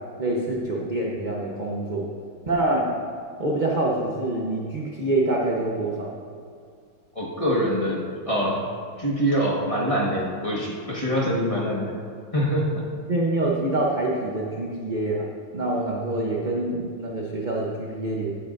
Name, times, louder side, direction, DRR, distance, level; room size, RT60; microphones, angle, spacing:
voice 1, 0.2-2.1 2.5-2.9 3.4-6.1 13.1-15.2 15.5-18.3, right 2 dB, 45° right, -3 dB, 0.6 m, -26 dB
voice 2, 7.1-8.6 9.0-11.9 12.3-12.9, equal, 20° left, -4 dB, 1.3 m, -24 dB
15.5 x 9.5 x 2.6 m, 2.2 s
omnidirectional pair, 2.3 m